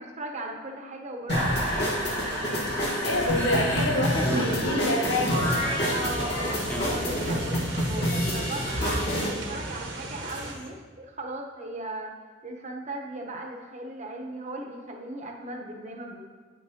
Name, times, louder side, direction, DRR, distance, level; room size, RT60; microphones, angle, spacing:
voice 1, 0.0-4.5 5.9-12.1 12.4-16.2, right 2 dB, 35° right, 1 dB, 0.8 m, -38 dB
sound 1, 1.3-9.3, equal, 60° left, 1.4 m, -27 dB
voice 2, 3.0-5.5, left 1 dB, 80° left, 0 dB, 1.1 m, -27 dB
sound 2, 5.3-10.5, right 1 dB, 75° right, 0.9 m, -35 dB
sound 3, 5.5-10.7, left 1 dB, 5° left, 0.5 m, -44 dB
8.7 x 6.2 x 2.7 m, 1.4 s
head